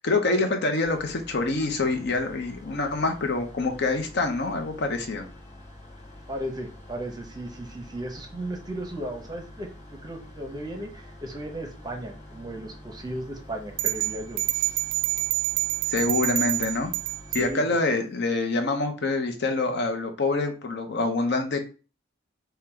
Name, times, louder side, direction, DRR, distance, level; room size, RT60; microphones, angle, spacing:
voice 1, 0.0-5.3 15.9-16.9 17.3-21.6, left 3 dB, 60° left, 5 dB, 0.7 m, -26 dB
sound 1, 0.8-17.5, left 1 dB, 35° left, 1.5 m, -46 dB
voice 2, 6.3-14.4 17.4-17.6, right 1 dB, 20° right, 3 dB, 0.7 m, -35 dB
sound 2, 13.8-17.5, right 16 dB, 45° right, 0.4 m, -27 dB
3.8 x 2.2 x 4.4 m, 0.34 s
head